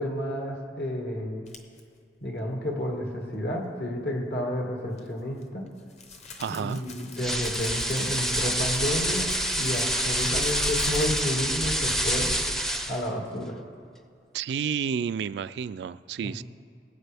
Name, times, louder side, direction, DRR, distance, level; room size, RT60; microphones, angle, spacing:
voice 1, 0.0-1.4 2.2-5.6 6.5-9.3 9.6-12.3 12.9-13.6 16.2-16.3, left 1 dB, 65° left, 0 dB, 1.9 m, -31 dB
sound 1, 1.5-1.8 4.9-11.5, left 4 dB, 40° left, 1.0 m, -46 dB
voice 2, 6.4-6.8 14.3-16.4, right 7 dB, 70° right, 15 dB, 0.3 m, -30 dB
sound 2, 7.2-13.1, equal, 5° left, 0.5 m, -27 dB
22.0 x 8.2 x 3.4 m, 2.2 s
head